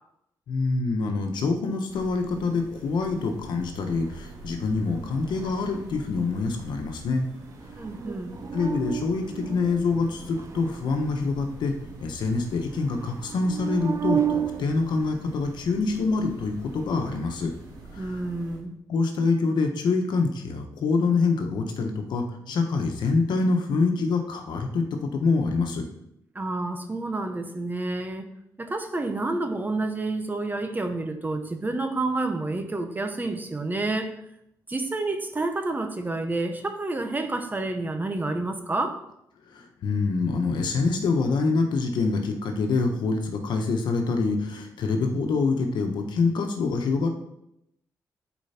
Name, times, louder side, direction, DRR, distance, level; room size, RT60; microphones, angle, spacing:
voice 1, 0.5-7.3 8.5-11.7 12.0-17.5 18.0-18.1 18.9-24.8 25.1-25.8 39.5-47.1, left 4 dB, 85° left, 4 dB, 1.2 m, -25 dB
sound 1, 1.9-18.6, right 2 dB, 90° right, 3.4 m, -45 dB
sound 2, 3.8-4.4 4.9-6.3 7.4-15.1, right 8 dB, 40° right, 0.5 m, -33 dB
voice 2, 7.7-8.4 18.0-18.8 26.3-28.3 28.6-34.1 34.7-39.0, right 2 dB, 25° right, 6 dB, 1.1 m, -29 dB
10.5 x 4.6 x 4.4 m, 0.80 s
cardioid pair, 90°, 7 cm